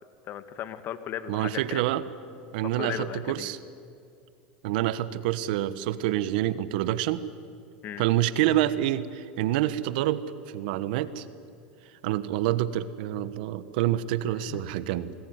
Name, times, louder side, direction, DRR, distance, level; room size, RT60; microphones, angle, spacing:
voice 1, 0.3-2.0 2.7-3.5 7.8-8.0 14.5-14.6, left 10 dB, 45° left, 11 dB, 1.9 m, -36 dB
voice 2, 1.3-2.0 2.5-3.6 4.6-7.2 8.0-11.2 12.0-15.1, right 13 dB, 70° right, 15 dB, 1.3 m, -27 dB
26.5 x 20.5 x 9.7 m, 2.5 s
hypercardioid pair, 105°, 5 cm